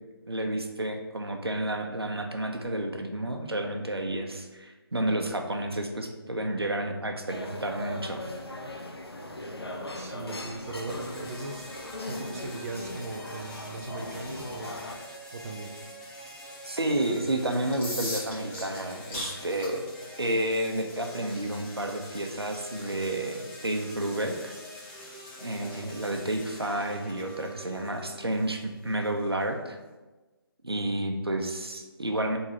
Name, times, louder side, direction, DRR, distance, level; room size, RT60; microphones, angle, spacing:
voice 1, 0.3-8.2 16.7-19.9 20.2-24.5 25.4-29.8 30.6-32.4, right 1 dB, 80° right, 4 dB, 0.9 m, -30 dB
sound 1, 7.3-15.0, left 1 dB, 85° left, 0.9 m, -39 dB
voice 2, 9.9-11.7 12.1-15.8 25.6-26.1, right 2 dB, 40° right, 1 dB, 0.6 m, -39 dB
sound 2, 10.6-28.6, equal, 5° left, 0.5 m, -46 dB
sound 3, 17.7-29.4, left 1 dB, 30° left, 1.9 m, -44 dB
4.6 x 3.8 x 5.6 m, 1.2 s
figure-of-eight pair, 150°, 13 cm